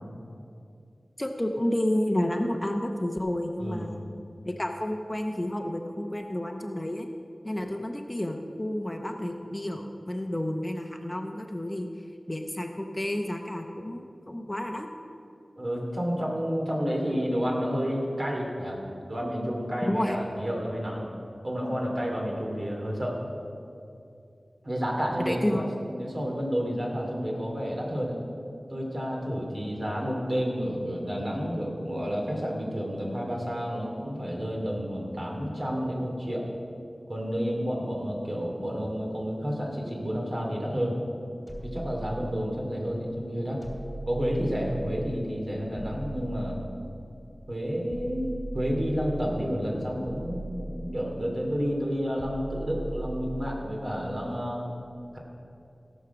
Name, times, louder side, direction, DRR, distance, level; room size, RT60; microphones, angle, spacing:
voice 1, 1.2-4.0 4.4-7.1 7.4-11.9 12.3-14.9 19.9-20.2 25.2-25.8, left 1 dB, 20° left, 4 dB, 0.8 m, -30 dB
voice 2, 3.6-3.9 15.6-18.8 19.1-21.1 21.4-23.2 24.6-25.7 25.9-28.2 28.7-36.5 37.1-41.0 41.6-43.6 44.1-46.6 47.5-54.7, equal, 50° right, -2 dB, 2.8 m, -30 dB
sound 1, 41.5-42.8 43.6-45.2 45.7-47.2 47.9-49.5 50.0-51.4 52.2-53.8, right 1 dB, 5° right, 2.7 m, -39 dB
17.0 x 6.5 x 5.9 m, 2.6 s
wide cardioid pair, 55°, 0 cm